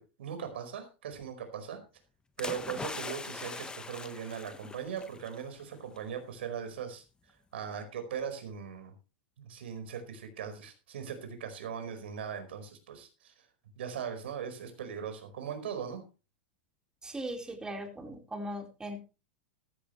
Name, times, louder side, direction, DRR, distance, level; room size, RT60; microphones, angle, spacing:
voice 1, 0.0-1.8 2.4-7.0 7.5-8.9 9.4-13.5 13.8-16.0, right 7 dB, 75° right, 7 dB, 4.9 m, -39 dB
sound 1, 2.4-5.4 5.7-6.0, left 4 dB, 15° left, 1.5 m, -41 dB
voice 2, 17.0-19.0, right 1 dB, 10° right, 3 dB, 4.4 m, -39 dB
15.0 x 13.5 x 3.2 m, 0.31 s
hypercardioid pair, 100°, 6 cm